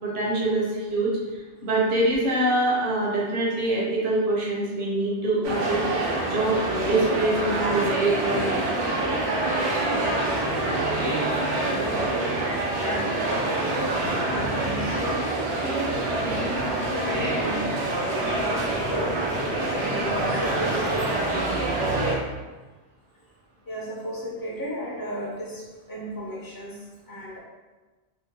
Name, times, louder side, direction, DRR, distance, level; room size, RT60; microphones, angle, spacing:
voice 1, 0.0-5.8 6.2-8.5, right 2 dB, 55° right, -4 dB, 0.9 m, -24 dB
sound 1, 5.4-22.1, right 2 dB, 85° right, 1.0 m, -26 dB
voice 2, 9.7-11.3 11.7-17.8 18.2-19.2 19.8-21.9 23.7-27.4, equal, 25° left, -5 dB, 0.5 m, -35 dB
3.5 x 2.1 x 2.9 m, 1.2 s
omnidirectional pair, 1.2 m